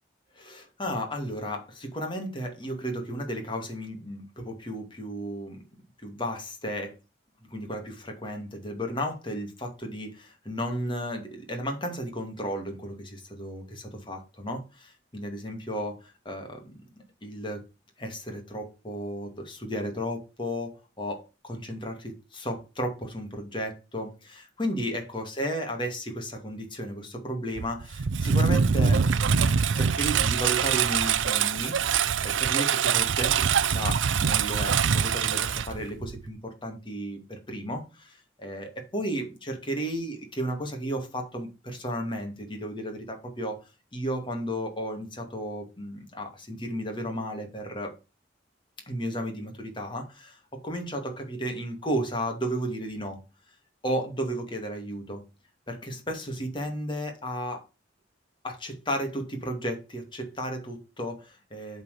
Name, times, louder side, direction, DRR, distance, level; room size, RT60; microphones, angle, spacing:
voice 1, 0.3-5.6 6.0-6.9 7.5-16.8 17.2-17.6 18.0-31.8 32.2-43.6 43.9-47.9 48.9-53.2 53.8-55.2 55.7-57.6 58.4-61.8, equal, 25° left, 2.4 m, -34 dB
Engine, 27.6-36.3, right 6 dB, 85° right, 0.6 m, -24 dB
7.9 x 4.5 x 6.7 m
head